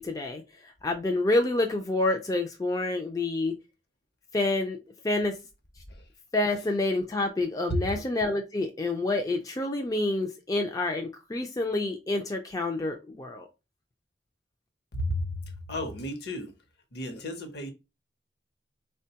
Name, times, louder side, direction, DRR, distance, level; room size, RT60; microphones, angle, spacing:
voice 1, 0.0-3.6 4.3-4.8 5.0-5.4 6.3-13.5, left 2 dB, 20° left, 0.3 m, -28 dB
voice 2, 14.9-16.5 16.9-17.7, left 1 dB, 60° left, 0.8 m, -33 dB
3.6 x 2.2 x 2.8 m
head